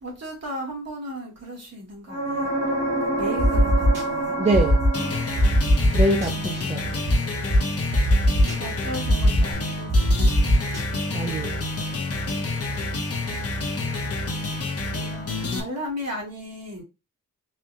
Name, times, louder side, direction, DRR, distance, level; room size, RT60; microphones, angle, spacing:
voice 1, 0.0-2.6 3.1-4.4 6.3-7.0 8.4-9.9 14.9-16.8, equal, 50° right, 2.0 m, -36 dB
sound 1, 2.1-5.8 9.5-9.6, right 1 dB, 20° left, 1.1 m, -27 dB
sound 2, 3.4-4.0 4.5-4.9 5.4-6.3 7.1-7.2 7.5-7.6 7.9-8.6 9.0-9.4 9.9-10.8, left 1 dB, 80° right, 1.7 m, -19 dB
voice 2, 4.4-4.8 5.9-7.0 11.1-11.7, right 2 dB, 20° right, 0.6 m, -25 dB
sound 3, 4.9-15.6, left 2 dB, 45° left, 0.9 m, -29 dB
4.2 x 2.7 x 2.4 m
wide cardioid pair, 100°, 32 cm